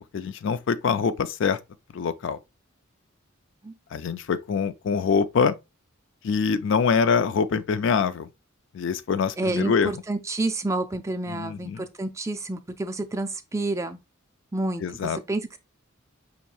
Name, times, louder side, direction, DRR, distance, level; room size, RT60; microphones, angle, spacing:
voice 1, 0.1-1.6 1.9-2.4 3.9-5.5 6.2-8.3 8.7-9.9 11.3-11.8 14.8-15.2, left 5 dB, 60° left, 0.4 m, -24 dB
voice 2, 9.4-14.0 14.5-15.6, right 2 dB, 15° right, 0.3 m, -29 dB
5.3 x 2.9 x 2.3 m
head